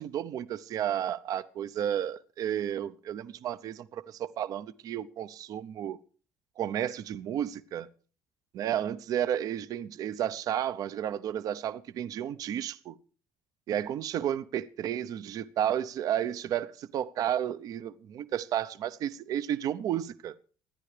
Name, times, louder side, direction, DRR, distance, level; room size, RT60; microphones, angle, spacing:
voice 1, 0.0-6.0 6.6-7.9 8.5-13.0 13.7-20.3, right 10 dB, 60° right, 0.7 m, -32 dB
25.5 x 9.9 x 3.3 m
cardioid pair, 95°, 7 cm